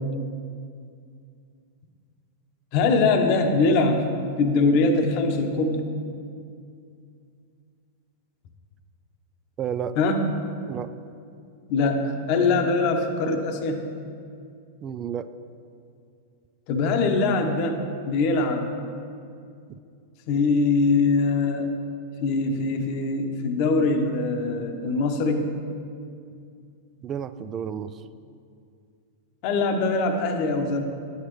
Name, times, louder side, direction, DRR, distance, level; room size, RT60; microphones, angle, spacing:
voice 1, 2.7-4.0 4.4-5.9 10.0-10.2 11.7-13.9 16.7-18.7 20.3-21.7 22.2-25.5 29.4-30.8, left 3 dB, 50° left, 5 dB, 0.9 m, -22 dB
voice 2, 9.6-10.0 10.7-10.9 14.8-15.3 27.0-28.0, right 8 dB, 30° right, 13 dB, 0.3 m, -31 dB
10.0 x 8.0 x 3.2 m, 2.4 s
hypercardioid pair, 100°, 0 cm